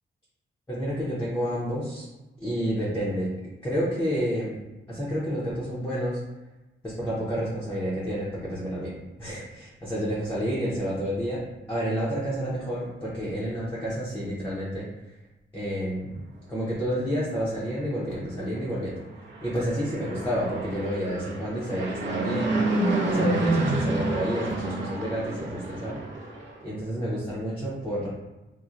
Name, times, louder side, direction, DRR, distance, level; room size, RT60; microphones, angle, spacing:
voice 1, 0.7-2.1 2.4-3.3 3.6-4.6 4.9-6.2 6.8-8.9 9.2-11.4 11.7-14.9 15.5-16.2 16.5-19.0 19.4-22.6 23.0-26.0 26.6-28.1, equal, 10° left, -8 dB, 0.6 m, -29 dB
Fixed-wing aircraft airplane, 19.2-26.6, right 2 dB, 70° right, 0.6 m, -29 dB
4.1 x 2.1 x 2.4 m, 1.1 s
wide cardioid pair, 160°, 20 cm